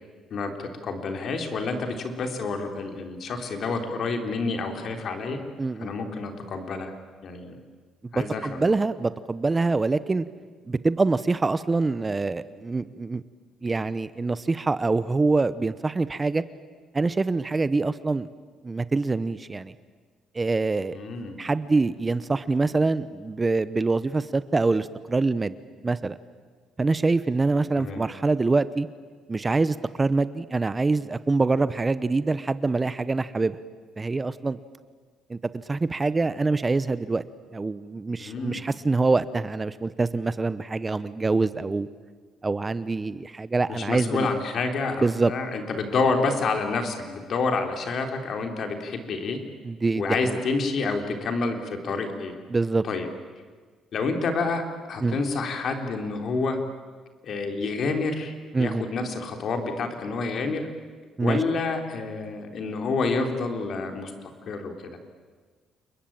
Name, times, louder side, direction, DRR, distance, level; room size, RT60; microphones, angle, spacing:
voice 1, 0.3-5.4 5.8-6.9 7.2-7.6 8.1-8.8 20.9-21.4 27.8-28.0 38.2-38.6 43.7-49.4 50.0-52.4 52.8-53.1 53.9-54.6 54.9-56.6 57.2-60.7 61.2-64.1 64.5-65.0, left 4 dB, 55° left, 5 dB, 3.8 m, -28 dB
voice 2, 5.6-5.9 8.1-10.3 10.7-13.2 13.6-16.4 16.9-18.3 18.6-19.7 20.3-21.0 21.4-25.5 25.8-26.2 26.8-28.9 29.3-33.6 34.0-34.6 35.3-37.2 37.5-41.9 42.4-44.3 45.0-45.3 49.6-50.4 52.5-52.8 55.0-55.2 58.5-58.9 61.2-61.4, right 3 dB, 20° right, 15 dB, 0.9 m, -25 dB
29.0 x 22.0 x 8.9 m, 1.5 s
cardioid pair, 100°, 0 cm